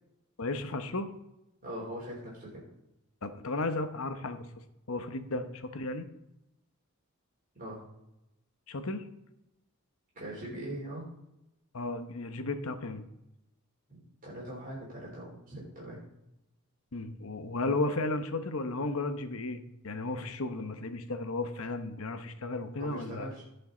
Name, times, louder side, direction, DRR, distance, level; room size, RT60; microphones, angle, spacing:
voice 1, 0.4-1.1 3.2-4.4 4.9-6.1 8.7-9.0 11.7-13.0 16.9-23.3, left 2 dB, 70° left, 9 dB, 0.9 m, -34 dB
voice 2, 1.6-2.6 5.3-5.4 7.6-7.8 10.2-11.1 13.9-16.0 22.8-23.4, right 1 dB, 40° right, -5 dB, 3.5 m, -41 dB
16.5 x 5.6 x 3.9 m, 0.89 s
head